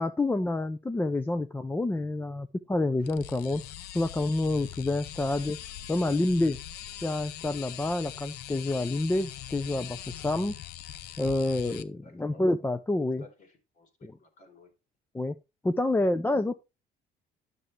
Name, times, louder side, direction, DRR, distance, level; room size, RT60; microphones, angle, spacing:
voice 1, 0.0-3.6 3.9-5.6 5.9-6.6 7.0-10.5 11.2-13.3 14.0-14.1 15.1-15.4 15.6-16.6, left 2 dB, 10° left, 0.6 m, -28 dB
sound 1, 3.0-11.8, left 12 dB, 70° left, 0.7 m, -42 dB
voice 2, 12.0-12.5 13.2-14.7 16.2-16.3, left 3 dB, 50° left, 3.2 m, -55 dB
9.9 x 6.8 x 3.3 m
cardioid pair, 110°, 17 cm